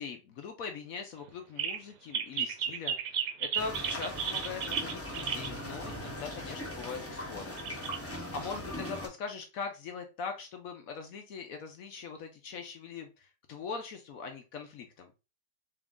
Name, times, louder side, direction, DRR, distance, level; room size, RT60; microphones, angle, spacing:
voice 1, 0.0-7.6 7.9-15.1, left 5 dB, 65° left, 5 dB, 0.9 m, -41 dB
sound 1, 1.3-1.4 1.6-1.8 2.1-5.5 7.0-7.1 7.6-8.0, right 7 dB, 70° right, 1.0 m, -33 dB
sound 2, 3.6-9.1, left 1 dB, 15° left, 0.5 m, -40 dB
3.7 x 2.9 x 3.5 m, 0.30 s
omnidirectional pair, 1.8 m